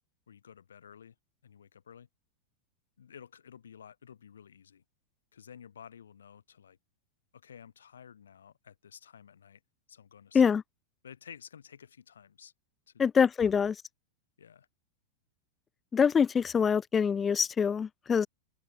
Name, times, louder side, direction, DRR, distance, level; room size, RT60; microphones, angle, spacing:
voice 1, 0.3-1.1 1.4-2.1 3.0-4.8 5.3-6.8 7.3-9.6 9.9-10.4 11.0-12.5 12.9-13.0 13.4-13.5 14.4-14.7, left 8 dB, 65° left, 6.2 m, -52 dB
voice 2, 13.0-13.7 15.9-18.3, left 6 dB, 20° left, 0.9 m, -25 dB
open air
figure-of-eight pair, 90°, 0 cm